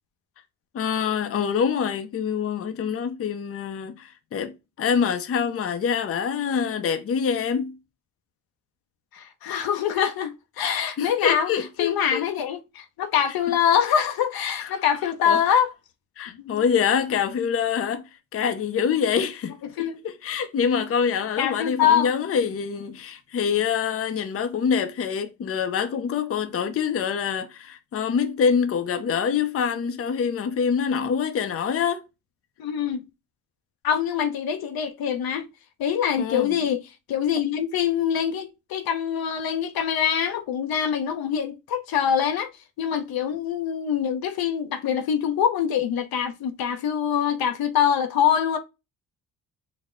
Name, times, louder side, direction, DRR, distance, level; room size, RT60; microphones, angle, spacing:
voice 1, 0.7-7.8 11.0-12.2 14.6-14.8 15.3-15.4 16.2-32.0 36.2-36.6, left 7 dB, 40° left, 0.6 m, -25 dB
voice 2, 9.1-11.5 11.8-15.7 16.4-16.6 19.8-20.0 21.4-22.1 32.6-33.0 33.8-35.5 35.8-36.8 37.1-42.5 42.8-48.6, left 8 dB, 75° left, 0.7 m, -24 dB
4.0 x 2.1 x 3.6 m
cardioid pair, 105°, 37 cm